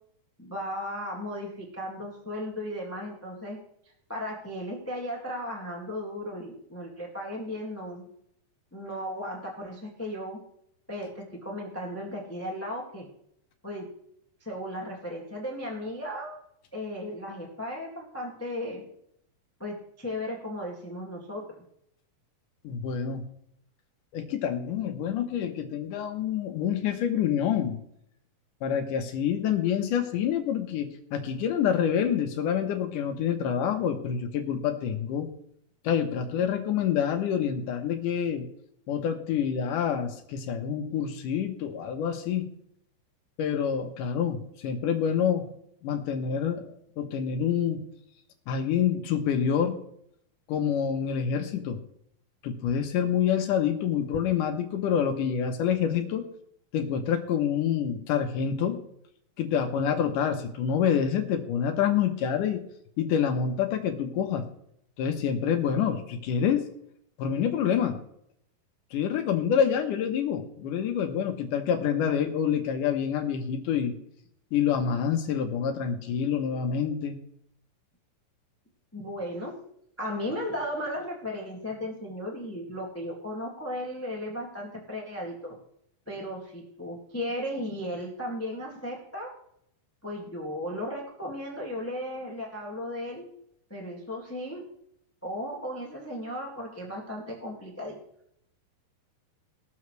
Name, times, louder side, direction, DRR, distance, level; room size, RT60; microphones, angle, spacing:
voice 1, 0.4-3.6 4.1-8.1 8.7-10.4 10.9-13.1 13.6-13.9 14.4-16.4 16.7-18.9 19.6-21.6 78.9-79.6 80.0-85.6 86.1-89.3 90.0-93.3 93.7-94.6 95.2-98.0, equal, 20° left, -1 dB, 0.4 m, -35 dB
voice 2, 22.6-23.2 24.1-27.8 28.6-35.3 35.8-38.5 38.9-42.6 43.4-45.5 45.8-47.8 48.5-49.8 50.5-51.8 52.4-56.3 56.7-58.8 59.4-62.6 63.0-64.5 65.0-66.7 67.2-68.0 68.9-73.9 74.5-77.2, left 8 dB, 70° left, 5 dB, 2.3 m, -27 dB
21.0 x 7.1 x 3.1 m, 0.74 s
omnidirectional pair, 4.1 m